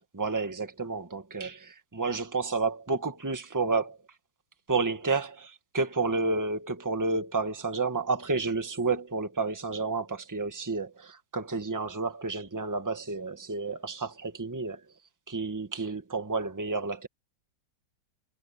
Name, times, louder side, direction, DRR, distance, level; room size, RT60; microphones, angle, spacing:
voice 1, 0.1-4.0 4.7-14.8 15.3-17.1, right 3 dB, 10° right, 1.5 m, -30 dB
omnidirectional pair, 1.9 m